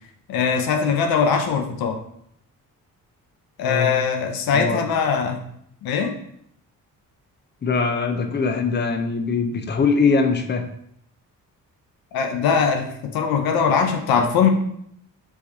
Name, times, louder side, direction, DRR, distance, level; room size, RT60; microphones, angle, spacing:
voice 1, 0.3-2.0 3.6-5.4 5.8-6.1 12.1-14.5, left 6 dB, 85° left, 4 dB, 0.7 m, -21 dB
voice 2, 4.5-4.8 7.6-10.6, left 4 dB, 30° left, 6 dB, 0.6 m, -22 dB
4.8 x 2.6 x 4.2 m, 0.71 s
cardioid pair, 60°, 35 cm